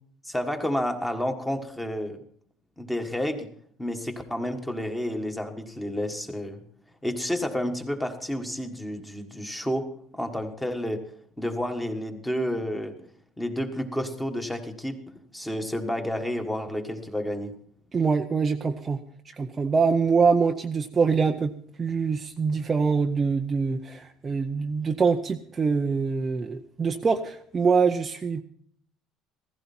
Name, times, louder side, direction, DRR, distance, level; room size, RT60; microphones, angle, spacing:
voice 1, 0.2-2.2 2.8-3.5 3.8-6.6 7.0-9.9 10.1-11.0 11.4-12.9 13.4-15.0 15.3-17.5, equal, 5° left, 5 dB, 1.6 m, -30 dB
voice 2, 17.9-19.0 19.4-21.5 21.8-28.4, right 5 dB, 20° right, 4 dB, 0.6 m, -24 dB
16.0 x 15.5 x 4.3 m, 0.64 s
cardioid pair, 170°, 0 cm